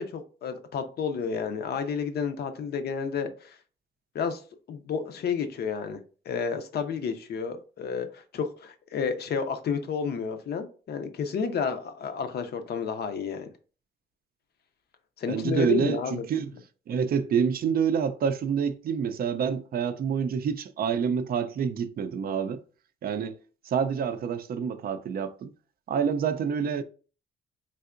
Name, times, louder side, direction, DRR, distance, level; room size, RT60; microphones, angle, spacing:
voice 1, 0.0-3.6 4.1-4.4 4.7-6.0 6.3-13.5 15.2-16.2, left 6 dB, 55° left, 0.5 m, -31 dB
voice 2, 15.3-16.5 16.9-22.6 23.0-23.4 23.6-25.5 25.9-26.8, right 7 dB, 50° right, 0.4 m, -27 dB
3.3 x 2.7 x 2.4 m
cardioid pair, 90°, 20 cm